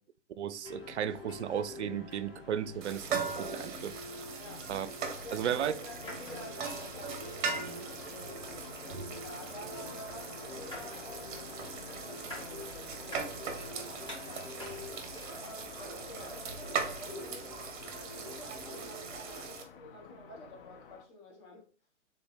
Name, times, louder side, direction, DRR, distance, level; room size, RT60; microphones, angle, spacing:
voice 1, 0.4-4.0 4.7-4.9 5.3-5.7, right 9 dB, 65° right, 0.5 m, -34 dB
sound 1, 0.6-19.5, left 1 dB, 15° left, 2.0 m, -46 dB
sound 2, 2.8-19.6, right 5 dB, 40° right, 1.0 m, -40 dB
sound 3, 3.9-21.0, left 6 dB, 45° left, 0.6 m, -52 dB
voice 2, 5.2-11.3 11.7-14.6 15.4-17.5 17.9-21.7, left 1 dB, 30° left, 1.5 m, -50 dB
3.9 x 3.7 x 3.4 m
figure-of-eight pair, 120°, 37 cm